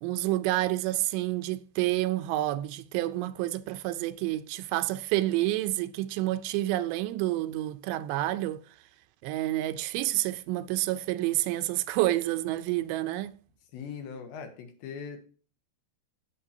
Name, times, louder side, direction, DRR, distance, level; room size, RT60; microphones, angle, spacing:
voice 1, 0.0-8.8 9.2-13.4, right 16 dB, 85° right, 2.7 m, -29 dB
voice 2, 13.7-15.2, left 6 dB, 80° left, 3.6 m, -40 dB
16.0 x 7.0 x 2.8 m
omnidirectional pair, 5.0 m